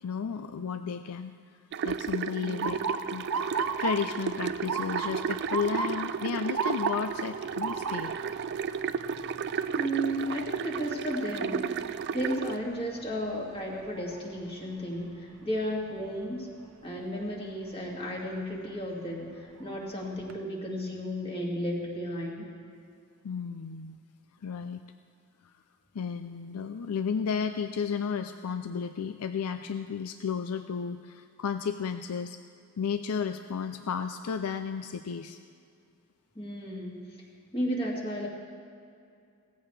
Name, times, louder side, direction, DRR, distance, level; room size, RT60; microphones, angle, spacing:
voice 1, 0.0-1.3 1.8-2.8 3.1-3.2 3.8-8.1 23.2-24.0 24.4-24.8 25.4-25.5 25.9-32.4 32.8-35.4, left 6 dB, 80° left, 9 dB, 0.4 m, -33 dB
sound 1, 1.7-12.6, right 6 dB, 50° right, 0.4 m, -33 dB
voice 2, 2.4-2.8 9.8-11.9 12.1-16.5 16.8-22.5 36.4-37.0 37.5-38.3, equal, 25° left, -2 dB, 2.2 m, -33 dB
Motor vehicle (road) / Siren, 2.6-14.5 15.0-15.4 16.2-16.5 18.4-18.6 19.1-19.2 19.6-20.3, right 5 dB, 70° right, 0.8 m, -37 dB
18.0 x 14.5 x 3.3 m, 2.3 s
head